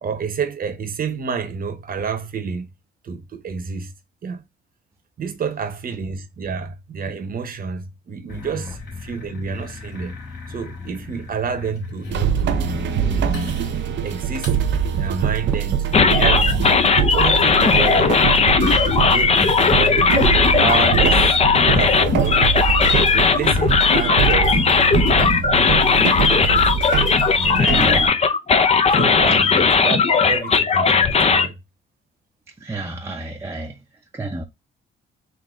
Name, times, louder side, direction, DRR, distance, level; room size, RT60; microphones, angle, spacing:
voice 1, 0.0-2.7 3.0-3.9 4.2-4.4 5.2-10.1 10.5-12.7 13.0-13.3 13.9-14.5 14.9-16.7 17.0-18.2 18.6-20.2 20.6-22.5 23.1-24.6 25.1-26.7 27.4-28.0 28.9-31.5, right 5 dB, 45° right, 0.9 m, -29 dB
sound 1, 8.3-14.6, left 3 dB, 55° left, 1.9 m, -35 dB
sound 2, 12.1-28.1, right 8 dB, 65° right, 0.6 m, -23 dB
sound 3, 15.9-31.5, left 5 dB, 30° left, 0.6 m, -17 dB
voice 2, 27.6-28.1 29.3-29.7 32.5-34.4, right 2 dB, 15° right, 0.6 m, -31 dB
3.9 x 2.7 x 3.7 m
cardioid pair, 90°, 20 cm